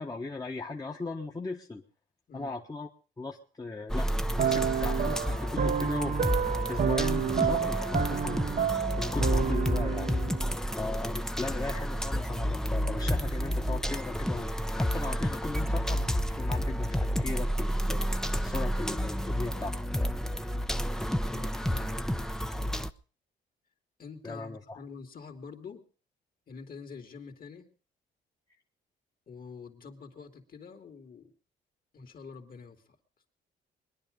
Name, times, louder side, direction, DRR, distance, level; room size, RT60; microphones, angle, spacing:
voice 1, 0.0-1.8 2.3-2.9 3.2-6.2 6.6-8.6 9.0-10.2 10.8-18.0 18.4-19.7 24.2-24.8, left 3 dB, 20° left, 1 dB, 1.3 m, -38 dB
sound 1, 3.9-22.9, equal, ahead, 0.8 m, -30 dB
sound 2, 4.4-10.7, right 8 dB, 45° right, 0.9 m, -30 dB
voice 2, 21.2-22.7 24.0-25.8 26.5-27.7 29.3-31.3 31.9-32.8, left 5 dB, 45° left, 6 dB, 2.7 m, -46 dB
22.0 x 10.5 x 5.3 m, 0.40 s
cardioid pair, 90°, 20 cm